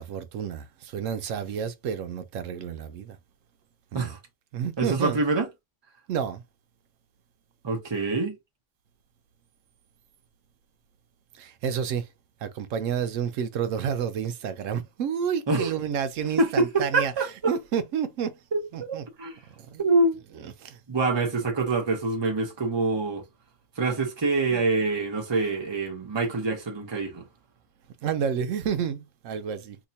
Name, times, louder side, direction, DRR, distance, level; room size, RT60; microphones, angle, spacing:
voice 1, 0.0-3.2 3.9-4.1 4.5-5.2 6.1-6.4 11.3-12.1 12.4-17.1 17.5-18.4 18.7-19.0 19.6-19.8 20.6-20.8 24.5-24.6 28.0-29.8, right 7 dB, 85° right, 1.0 m, -30 dB
voice 2, 4.8-5.5 7.6-8.4 15.5-15.7 16.4-17.6 18.5-19.4 19.8-20.2 20.9-23.3 23.8-27.2, right 3 dB, 25° right, 0.8 m, -25 dB
2.9 x 2.3 x 4.0 m
omnidirectional pair, 1.3 m